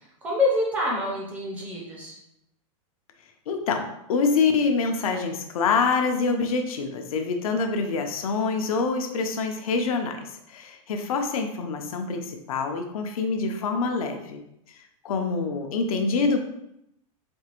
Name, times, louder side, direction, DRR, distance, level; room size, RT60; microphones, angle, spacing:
voice 1, 0.0-2.1, left 2 dB, 10° right, -3 dB, 0.4 m, -26 dB
voice 2, 3.5-14.4 15.0-16.4, left 4 dB, 85° left, 4 dB, 0.6 m, -26 dB
4.4 x 2.4 x 2.9 m, 0.78 s
supercardioid pair, 175°, 18 cm